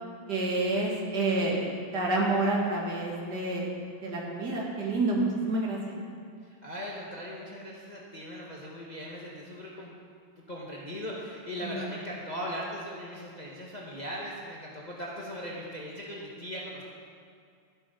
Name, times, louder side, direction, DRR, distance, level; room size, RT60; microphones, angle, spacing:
voice 1, 0.3-3.7 4.0-6.0 11.6-11.7, right 2 dB, 55° right, -2 dB, 2.5 m, -28 dB
voice 2, 6.4-9.9 10.4-16.8, equal, 25° left, -4 dB, 1.3 m, -39 dB
14.0 x 8.3 x 5.4 m, 2.2 s
omnidirectional pair, 2.3 m